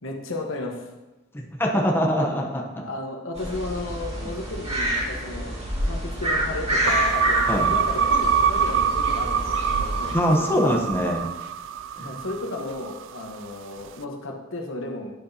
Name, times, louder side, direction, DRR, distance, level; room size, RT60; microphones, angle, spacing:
voice 1, 0.0-0.9 2.8-5.6 5.8-10.1 10.4-10.7 12.0-15.2, left 2 dB, 70° left, 1 dB, 1.2 m, -34 dB
voice 2, 1.3-2.6 7.5-7.6 10.1-11.3 12.0-12.2, equal, 10° left, -1 dB, 0.9 m, -23 dB
sound 1, 3.4-10.1, right 1 dB, 30° right, 2.0 m, -28 dB
sound 2, 6.9-13.2, right 7 dB, 65° right, 0.3 m, -25 dB
10.0 x 7.0 x 2.8 m, 1.1 s
head